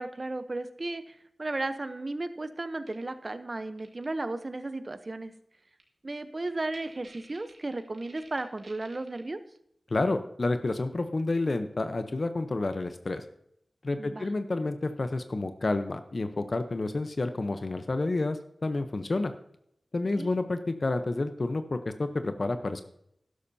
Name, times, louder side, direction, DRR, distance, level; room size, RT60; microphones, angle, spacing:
voice 1, 0.0-5.3 6.0-9.4 14.0-14.3 20.2-20.3, right 2 dB, 45° right, 11 dB, 0.8 m, -35 dB
sound 1, 2.9-3.0 3.8-4.1 5.8-5.9 6.2-6.3 6.5-9.2, right 2 dB, 85° right, 2.0 m, -53 dB
voice 2, 9.9-13.2 13.8-19.3 19.9-22.8, left 2 dB, 55° left, 8 dB, 0.7 m, -29 dB
12.5 x 11.5 x 2.7 m, 0.74 s
wide cardioid pair, 75°, 0 cm